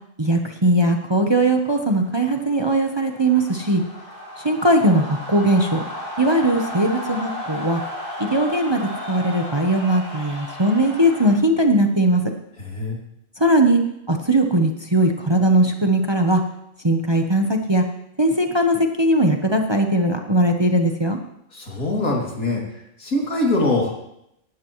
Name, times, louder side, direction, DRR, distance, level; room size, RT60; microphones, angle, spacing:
voice 1, 0.2-3.8 4.4-5.8 6.2-7.8 8.2-8.8 9.1-12.2 13.4-13.8 14.1-16.4 16.8-17.8 18.2-21.2, right 1 dB, 20° right, 4 dB, 0.9 m, -19 dB
sound 1, 1.4-11.3, left 1 dB, 40° right, 4.8 m, -34 dB
voice 2, 12.6-13.0 21.5-22.6 23.0-23.9, left 2 dB, 90° left, -2 dB, 3.3 m, -23 dB
18.5 x 13.0 x 3.1 m, 0.79 s
omnidirectional pair, 1.4 m